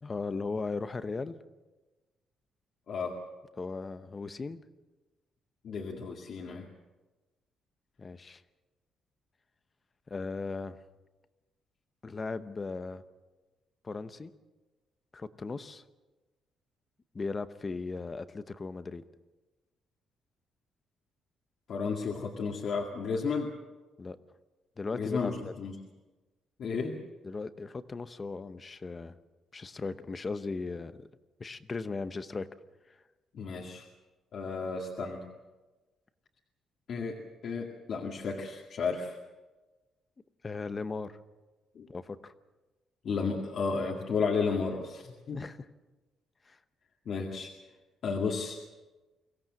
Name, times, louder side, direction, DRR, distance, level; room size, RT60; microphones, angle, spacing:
voice 1, 0.0-1.4 3.6-4.6 8.0-8.4 10.1-10.8 12.0-13.0 13.8-14.3 15.1-15.8 17.1-19.0 24.0-24.2 24.8-25.5 27.2-29.2 29.5-31.0 31.4-32.5 32.9-33.0 40.4-41.2 41.9-42.3 45.3-45.7 46.5-46.6, left 4 dB, 25° left, 12 dB, 0.9 m, -37 dB
voice 2, 5.6-6.7 21.7-23.5 24.9-25.7 26.6-27.0 33.3-33.9 34.3-35.2 36.9-37.2 37.4-39.2 41.8-41.9 43.0-45.4 47.1-47.5 48.0-48.6, left 5 dB, 50° left, -1 dB, 2.2 m, -33 dB
23.5 x 16.5 x 7.6 m, 1.2 s
cardioid pair, 145°, 0 cm